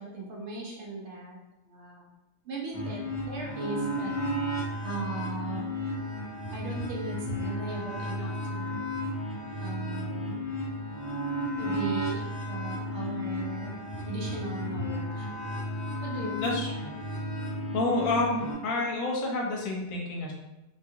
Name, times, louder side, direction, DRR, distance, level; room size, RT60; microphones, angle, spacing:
voice 1, 0.0-1.4 1.6-2.0 2.4-4.1 4.8-5.8 6.5-8.8 9.6-10.4 11.6-13.8 14.0-15.3 16.0-16.5, right 3 dB, 60° right, -2 dB, 0.8 m, -38 dB
sound 1, 2.7-18.5, equal, 10° left, 0.9 m, -33 dB
voice 2, 16.4-16.9 17.7-20.3, left 2 dB, 70° left, -1 dB, 1.1 m, -29 dB
2.8 x 2.4 x 2.7 m, 0.94 s
omnidirectional pair, 1.5 m